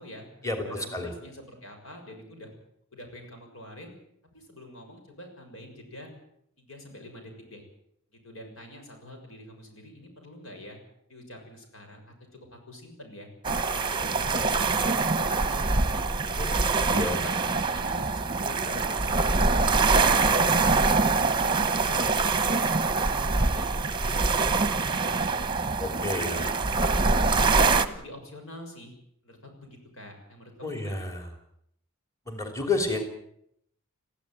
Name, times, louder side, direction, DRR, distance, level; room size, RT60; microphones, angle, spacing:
voice 1, 0.0-2.6 2.9-3.9 4.3-6.1 6.6-7.6 8.1-10.8 11.1-12.1 12.5-13.3 13.7-16.1 16.5-19.1 19.4-19.9 20.3-25.5 25.9-26.5 27.3-28.9 29.2-31.1, left 1 dB, 65° left, 4 dB, 6.6 m, -46 dB
sound 1, 13.4-27.9, right 3 dB, 20° right, 1.1 m, -24 dB
voice 2, 16.9-17.2 25.8-26.4 30.6-31.3 32.3-33.1, left 3 dB, 15° left, 5 dB, 3.0 m, -30 dB
20.5 x 15.0 x 9.2 m, 0.73 s
head